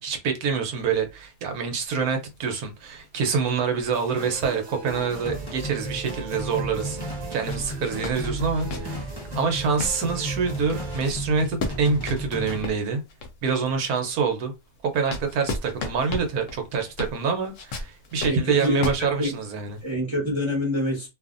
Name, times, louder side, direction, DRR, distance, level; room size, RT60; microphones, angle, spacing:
voice 1, 0.0-7.0 7.3-9.1 9.3-13.0 13.4-14.5 14.8-19.8, right 5 dB, 80° right, 1.2 m, -26 dB
sound 1, 0.7-6.1 6.4-6.5 7.2-13.6 14.1-19.8, left 2 dB, 65° left, 0.9 m, -37 dB
sound 2, 3.9-11.0, right 3 dB, 50° right, 1.1 m, -39 dB
sound 3, 5.2-12.6, right 1 dB, 30° left, 0.4 m, -34 dB
voice 2, 18.2-19.3 19.8-21.1, equal, 20° right, 0.9 m, -26 dB
2.7 x 2.5 x 2.4 m
omnidirectional pair, 1.6 m